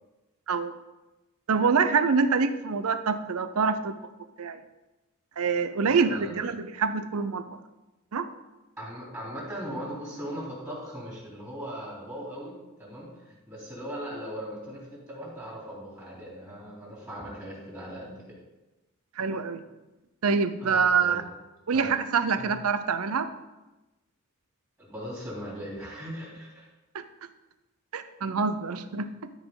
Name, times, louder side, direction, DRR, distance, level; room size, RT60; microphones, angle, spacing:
voice 1, 1.5-3.9 4.4-4.6 5.4-7.6 8.1-8.3 19.2-19.6 20.2-21.2 21.7-23.3 26.9-27.0 27.9-29.3, right 5 dB, 80° right, 11 dB, 0.6 m, -26 dB
voice 2, 5.9-6.4 8.8-18.4 20.6-21.2 21.7-21.9 22.4-22.5 24.8-26.7, equal, 15° right, -5 dB, 3.2 m, -39 dB
13.0 x 5.0 x 3.9 m, 1.1 s
head